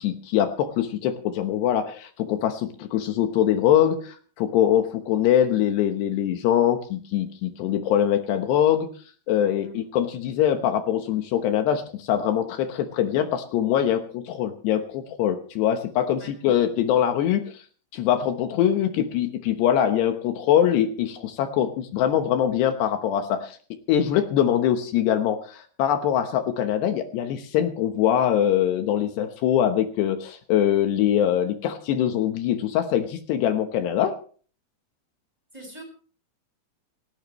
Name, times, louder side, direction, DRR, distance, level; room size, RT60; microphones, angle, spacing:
voice 1, 0.0-8.9 9.3-17.6 17.9-23.6 23.9-34.2, left 10 dB, 75° left, 7 dB, 3.2 m, -23 dB
voice 2, 35.5-35.8, right 1 dB, 10° right, 3 dB, 6.3 m, -43 dB
29.0 x 12.0 x 3.1 m, 0.42 s
omnidirectional pair, 5.0 m